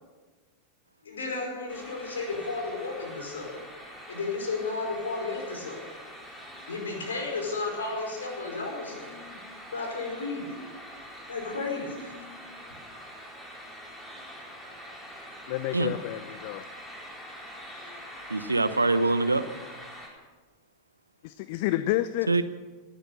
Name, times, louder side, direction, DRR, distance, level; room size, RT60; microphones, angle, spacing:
voice 1, 1.0-3.6 4.1-5.8 6.7-9.4 9.7-10.6 11.3-12.3, left 3 dB, 70° left, 1 dB, 5.0 m, -33 dB
sound 1, 1.7-20.1, equal, 10° left, 4.6 m, -45 dB
voice 2, 15.5-16.7 21.2-22.4, left 15 dB, 50° left, 14 dB, 0.5 m, -29 dB
voice 3, 18.3-19.4 22.3-22.4, right 3 dB, 80° right, 13 dB, 0.8 m, -24 dB
19.0 x 10.0 x 6.7 m, 1.3 s
figure-of-eight pair, 90°, 0 cm